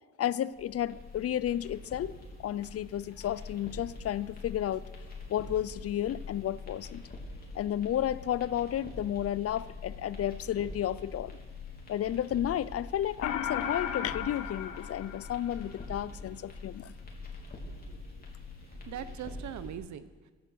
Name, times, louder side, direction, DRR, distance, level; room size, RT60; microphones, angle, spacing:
voice 1, 0.2-2.1 2.4-4.8 5.3-7.0 7.5-11.3 11.9-16.9, left 11 dB, 50° left, 18 dB, 0.5 m, -32 dB
sound 1, 0.5-19.7, left 3 dB, 30° left, 3.3 m, -45 dB
sound 2, 13.2-15.8, left 9 dB, 80° left, 1.0 m, -35 dB
voice 2, 17.8-18.3 18.7-20.3, right 10 dB, 70° right, 14 dB, 0.9 m, -42 dB
15.0 x 10.5 x 6.3 m, 1.4 s
cardioid pair, 90°, 30 cm